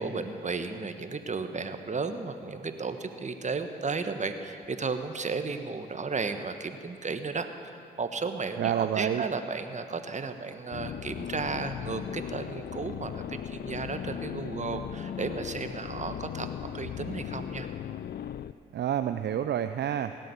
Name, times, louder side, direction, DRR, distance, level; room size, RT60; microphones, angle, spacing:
voice 1, 0.0-16.5 16.7-17.7, right 4 dB, 35° right, 8 dB, 1.3 m, -34 dB
voice 2, 8.6-9.2 18.7-20.2, right 10 dB, 55° right, 10 dB, 0.5 m, -28 dB
sound 1, 10.7-18.5, left 9 dB, 55° left, 0.5 m, -37 dB
17.5 x 7.7 x 9.5 m, 2.6 s
hypercardioid pair, 45°, 21 cm